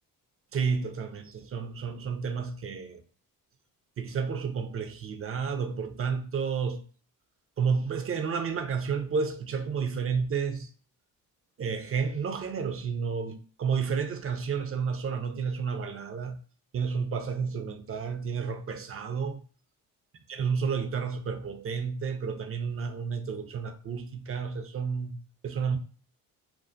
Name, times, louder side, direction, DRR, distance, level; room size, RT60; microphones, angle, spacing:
voice 1, 0.5-3.0 4.0-6.8 7.6-10.7 11.6-16.4 16.7-19.4 20.3-25.2 25.4-25.8, right 6 dB, 30° right, 0.5 m, -31 dB
2.3 x 2.3 x 2.5 m
supercardioid pair, 60°, 44 cm